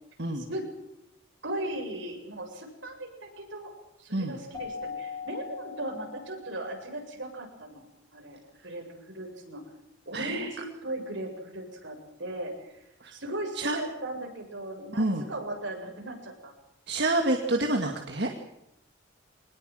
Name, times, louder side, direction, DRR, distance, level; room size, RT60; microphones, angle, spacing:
voice 1, 0.3-0.7 1.4-3.7 4.0-7.8 8.1-9.6 10.1-12.8 13.1-16.5 17.4-17.7, right 1 dB, 75° right, 2 dB, 7.6 m, -37 dB
Keyboard (musical), 4.5-6.8, left 5 dB, 20° left, 3.9 m, -40 dB
voice 2, 10.1-10.5 13.0-13.1 13.6-13.8 15.0-15.2 16.9-18.3, right 2 dB, 55° right, 4 dB, 2.3 m, -27 dB
23.5 x 20.0 x 7.9 m, 0.83 s
head